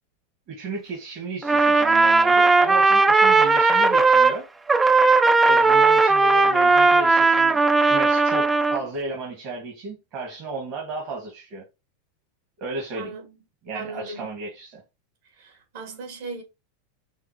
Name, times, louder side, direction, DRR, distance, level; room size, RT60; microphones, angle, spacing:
voice 1, 0.5-4.4 5.4-7.6 7.8-11.6 12.6-13.1 13.7-14.8, right 3 dB, 50° right, 1.9 m, -34 dB
Trumpet, 1.4-4.4 4.7-8.8, right 3 dB, 15° right, 0.5 m, -17 dB
voice 2, 13.0-13.4 13.7-14.4 15.2-16.4, right 3 dB, 70° right, 2.7 m, -38 dB
5.7 x 2.8 x 3.1 m
hypercardioid pair, 95°, 0 cm